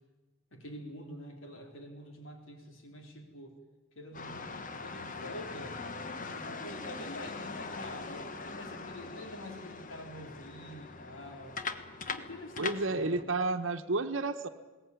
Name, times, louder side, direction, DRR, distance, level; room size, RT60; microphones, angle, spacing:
voice 1, 0.5-3.5 4.0-11.6 12.1-13.2, left 1 dB, 70° left, 4 dB, 3.8 m, -46 dB
sound 1, 4.1-13.2, left 4 dB, 40° left, 1.3 m, -41 dB
voice 2, 12.6-14.5, right 3 dB, 65° right, 5 dB, 1.2 m, -31 dB
21.0 x 18.5 x 9.7 m, 1.2 s
head